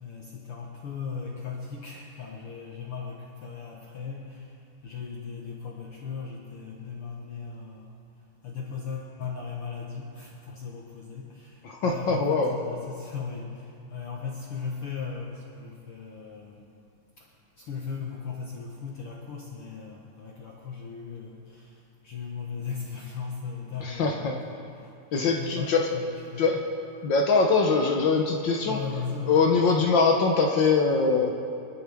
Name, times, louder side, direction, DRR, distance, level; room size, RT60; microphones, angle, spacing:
voice 1, 0.0-4.5 4.8-7.9 8.4-16.7 17.2-17.3 17.6-24.9 25.4-26.4 28.6-29.4, left 5 dB, 55° left, -2 dB, 1.9 m, -37 dB
voice 2, 11.6-12.5 23.8-24.4 25.1-25.9 26.4-26.6 27.0-28.8 29.3-31.3, left 4 dB, 80° left, 2 dB, 1.0 m, -23 dB
26.0 x 12.0 x 3.6 m, 2.5 s
omnidirectional pair, 3.4 m